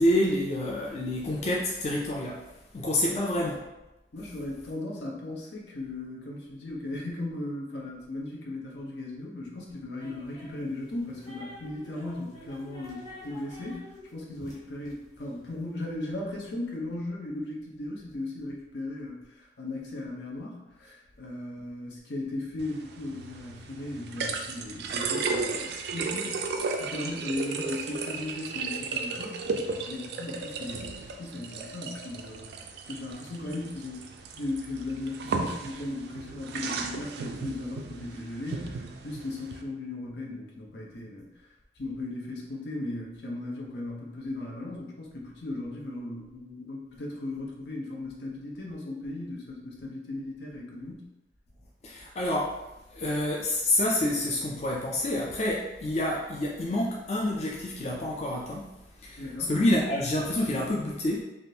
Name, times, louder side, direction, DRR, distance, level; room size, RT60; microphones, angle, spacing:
voice 1, 0.0-2.4 2.7-3.6 14.4-14.5 51.8-52.6 52.9-58.7 59.0-61.2, left 1 dB, 35° left, -3 dB, 0.4 m, -28 dB
voice 2, 4.1-26.4 26.8-29.4 29.9-32.5 32.9-34.0 34.4-41.3 41.8-51.1 59.2-59.6, left 2 dB, 75° left, -1 dB, 0.7 m, -37 dB
sound 1, 10.0-15.8, left 1 dB, 20° left, 0.8 m, -49 dB
sound 2, 22.6-39.6, right 4 dB, 65° right, 0.3 m, -35 dB
3.5 x 2.5 x 2.7 m, 1.0 s
head